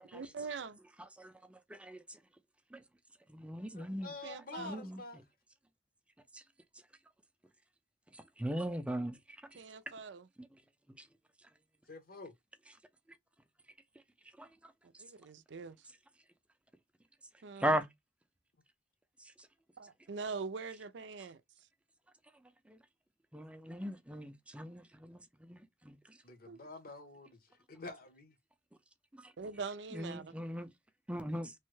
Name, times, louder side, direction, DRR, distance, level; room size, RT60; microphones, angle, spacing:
voice 1, 0.1-0.8 4.2-4.8 9.5-10.3 15.0-15.9 17.4-17.8 19.8-21.4 26.5-26.6 29.4-30.3, right 4 dB, 90° right, 0.5 m, -43 dB
voice 2, 1.2-2.2 2.7-2.8 3.3-4.1 4.6-5.0 6.3-6.4 8.4-9.2 10.4-10.5 14.4-14.5 17.6-17.9 22.7-22.8 23.3-26.0 29.1-29.3 29.9-30.7 31.1-31.5, right 1 dB, 5° right, 0.5 m, -38 dB
voice 3, 3.7-5.2 11.9-12.3 26.2-28.4, left 3 dB, 55° left, 0.9 m, -48 dB
3.1 x 2.2 x 3.1 m
head